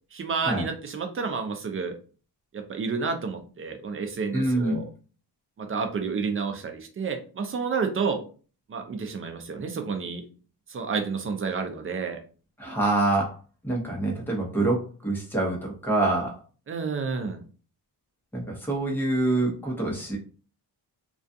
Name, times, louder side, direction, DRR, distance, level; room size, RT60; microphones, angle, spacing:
voice 1, 0.1-2.0 2.5-4.8 5.6-8.2 8.7-10.2 10.7-12.2 16.7-17.4, right 5 dB, 30° right, 6 dB, 0.4 m, -30 dB
voice 2, 4.3-4.8 12.6-13.3 13.6-16.4 18.3-20.2, right 2 dB, 5° left, -2 dB, 0.8 m, -26 dB
2.3 x 2.3 x 2.6 m, 0.37 s
cardioid pair, 130°, 42 cm